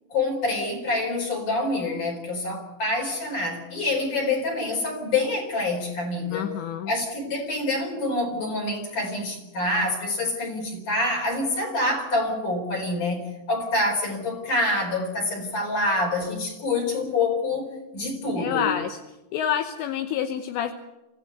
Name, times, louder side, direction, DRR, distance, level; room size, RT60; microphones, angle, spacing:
voice 1, 0.1-6.5 6.9-18.7, left 2 dB, 45° left, 4 dB, 5.6 m, -26 dB
voice 2, 6.3-6.9 18.4-19.0 19.3-20.7, left 9 dB, 75° left, 7 dB, 3.2 m, -27 dB
26.5 x 15.5 x 8.0 m, 1.0 s
omnidirectional pair, 5.2 m